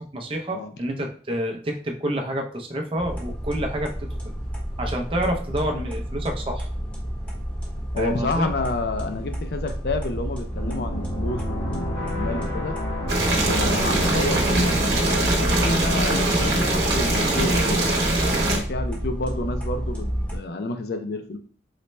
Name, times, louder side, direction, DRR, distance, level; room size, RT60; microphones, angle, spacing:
voice 1, 0.1-3.9 4.8-6.7 8.0-8.5, right 1 dB, 30° right, 2 dB, 0.5 m, -28 dB
sound 1, 3.0-20.4, equal, 5° left, 0.8 m, -31 dB
voice 2, 7.9-12.8 13.4-17.9 18.5-21.4, left 2 dB, 60° left, 7 dB, 0.4 m, -30 dB
sound 2, 10.5-16.4, equal, 30° left, 0.8 m, -31 dB
Boiling, 13.1-18.6, right 1 dB, 70° right, 0.9 m, -22 dB
4.0 x 2.1 x 3.1 m, 0.44 s
head